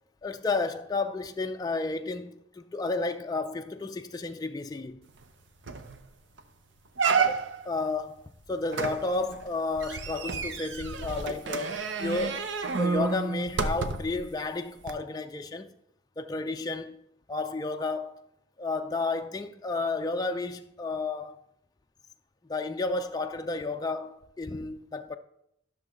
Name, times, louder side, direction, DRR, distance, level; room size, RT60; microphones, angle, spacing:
voice 1, 0.2-5.0 7.2-12.5 12.8-15.8 16.2-17.0 17.3-18.2 18.6-21.4 22.5-25.2, left 3 dB, 20° left, 0.3 m, -32 dB
sound 1, 5.2-5.3 5.7-6.0 6.4-6.5 7.0-7.7 8.7-14.2 14.8-14.9, right 5 dB, 75° right, 0.6 m, -30 dB
12.5 x 6.4 x 3.1 m
head